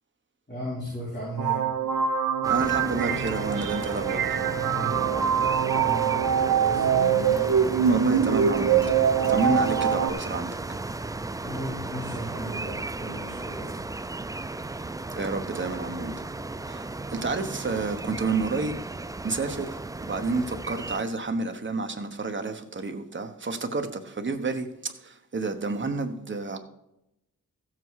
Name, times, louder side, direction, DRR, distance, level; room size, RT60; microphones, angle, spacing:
voice 1, 0.5-1.7 4.7-5.5 5.8-7.0 11.4-13.9, equal, 30° left, 5.4 m, -36 dB
sound 1, 1.4-10.1, right 8 dB, 80° right, 0.7 m, -24 dB
sound 2, 2.4-21.0, right 2 dB, 10° right, 0.3 m, -35 dB
voice 2, 2.5-4.4 7.9-10.6 15.2-16.3 16.6-26.6, right 3 dB, 35° right, 1.1 m, -30 dB
sound 3, 6.9-11.0, left 7 dB, 80° left, 0.9 m, -42 dB
15.0 x 7.6 x 4.7 m
wide cardioid pair, 145°, 34 cm